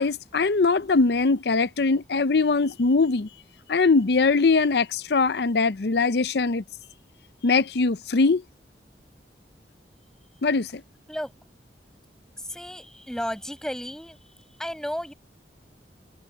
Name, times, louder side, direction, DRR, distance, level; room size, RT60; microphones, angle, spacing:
voice 1, 0.0-3.3 3.7-6.6 7.4-8.4 10.4-10.8, left 4 dB, 65° left, 0.6 m, -21 dB
voice 2, 12.4-15.1, equal, 5° left, 7.2 m, -34 dB
head